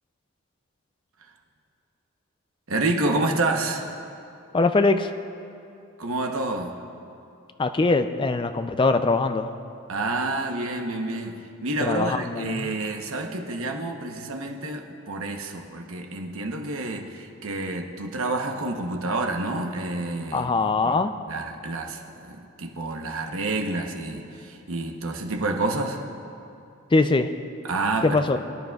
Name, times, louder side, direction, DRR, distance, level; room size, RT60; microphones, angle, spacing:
voice 1, 2.7-3.9 6.0-6.7 9.9-21.0 21.3-26.0 27.6-28.4, right 2 dB, 80° right, 3 dB, 1.0 m, -29 dB
voice 2, 4.5-5.1 7.6-9.5 11.8-12.7 20.3-21.1 26.9-27.3 28.0-28.4, left 3 dB, 25° left, 8 dB, 0.4 m, -22 dB
22.5 x 10.5 x 2.4 m, 2.7 s
head